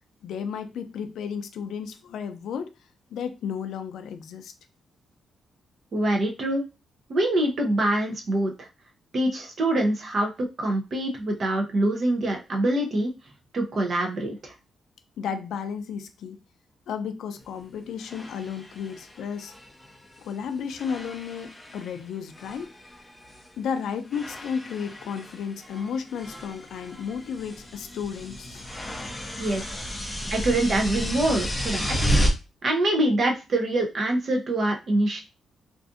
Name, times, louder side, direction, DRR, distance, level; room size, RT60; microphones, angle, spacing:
voice 1, 0.2-2.7 3.1-4.5 15.2-16.4 16.9-19.5 20.2-22.7 23.6-28.7 30.3-30.4, left 7 dB, 80° left, 0.3 m, -33 dB
voice 2, 5.9-6.6 7.1-8.5 9.1-13.1 13.5-14.5 29.4-29.8 30.3-32.0 32.6-35.2, right 1 dB, 40° right, 0.6 m, -25 dB
sound 1, 17.4-17.5 18.0-20.4 20.7-22.0 22.3-23.5 24.1-32.3, equal, 10° left, 0.4 m, -32 dB
2.5 x 2.4 x 2.4 m
wide cardioid pair, 150°, 0 cm